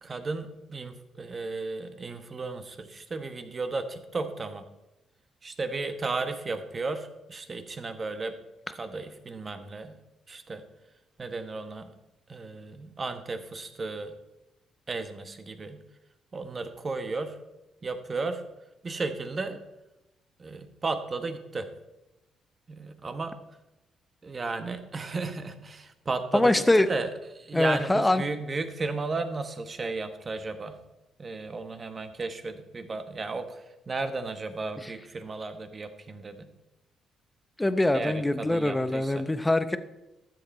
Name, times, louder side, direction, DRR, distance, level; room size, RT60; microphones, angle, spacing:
voice 1, 0.0-4.6 5.4-8.3 8.7-10.0 10.3-10.6 11.2-11.9 12.3-14.1 14.9-15.8 16.3-17.4 17.8-18.4 18.8-19.6 20.4-21.7 22.7-23.4 24.2-30.8 31.2-36.5 37.9-39.3, right 3 dB, 35° right, 8 dB, 1.1 m, -34 dB
voice 2, 26.3-26.9 27.5-28.2 34.8-34.9 37.6-39.8, left 1 dB, 10° left, 11 dB, 0.7 m, -23 dB
12.5 x 7.7 x 4.2 m, 1.0 s
cardioid pair, 90°, 0 cm